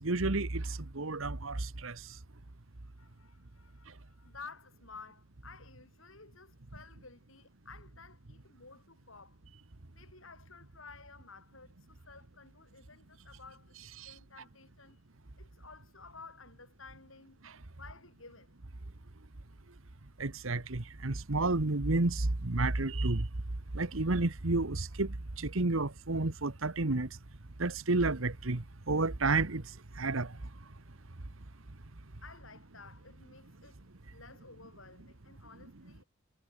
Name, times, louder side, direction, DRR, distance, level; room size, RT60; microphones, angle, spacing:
voice 1, 0.0-2.0 14.0-14.1 20.2-23.3 23.7-27.1 27.6-29.6 30.0-30.3, right 2 dB, 75° right, 1.5 m, -31 dB
voice 2, 3.0-9.4 9.9-13.8 14.0-15.0 15.4-17.4 17.7-18.6 32.2-33.8 34.1-36.1, left 4 dB, 70° left, 8.0 m, -53 dB
head